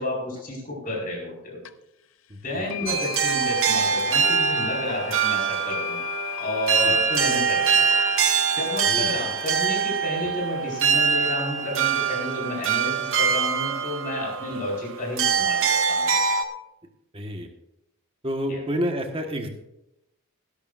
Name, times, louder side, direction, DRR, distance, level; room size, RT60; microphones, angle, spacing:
voice 1, 0.0-1.7 2.4-6.0 6.4-7.9 8.5-16.2 18.5-18.6, left 1 dB, 40° left, -3 dB, 5.1 m, -31 dB
sound 1, 1.7-1.8 2.7-12.8, left 9 dB, 60° left, 0.6 m, -37 dB
voice 2, 2.3-2.9 6.8-7.0 8.8-9.2 17.1-17.5 18.2-19.5, equal, 25° right, 3 dB, 1.5 m, -30 dB
sound 2, 2.9-16.4, right 6 dB, 60° right, 1.2 m, -24 dB
19.5 x 11.5 x 2.6 m, 0.85 s
head